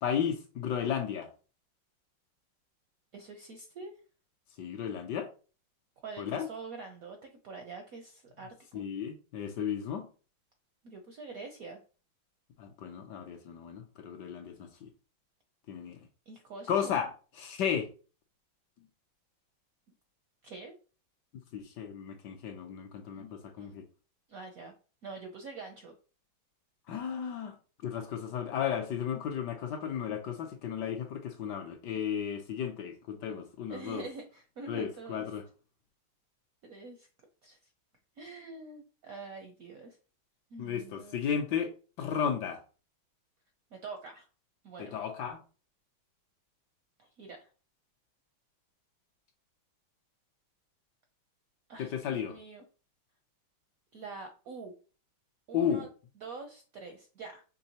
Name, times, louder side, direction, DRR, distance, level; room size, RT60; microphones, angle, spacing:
voice 1, 0.0-1.3 4.6-5.3 6.2-6.5 8.7-10.1 12.6-14.9 15.7-16.0 16.7-17.1 17.3-17.9 21.5-23.8 26.9-27.6 27.8-34.0 34.7-35.4 40.6-41.7 42.0-42.6 44.8-45.4 51.8-52.4 55.5-55.8, left 8 dB, 70° left, 4 dB, 1.1 m, -34 dB
voice 2, 3.1-3.9 6.0-8.9 10.8-11.8 16.3-17.0 20.4-20.7 23.1-23.2 23.6-23.7 24.3-24.7 25.0-25.9 33.7-35.3 36.6-37.1 37.4-37.6 38.2-40.0 40.5-41.2 43.7-44.3 44.6-45.0 47.0-47.5 51.7-52.6 53.9-54.7 55.5-55.9 56.2-57.4, right 4 dB, 70° right, 4 dB, 0.8 m, -45 dB
5.3 x 3.2 x 2.8 m, 0.37 s
omnidirectional pair, 2.2 m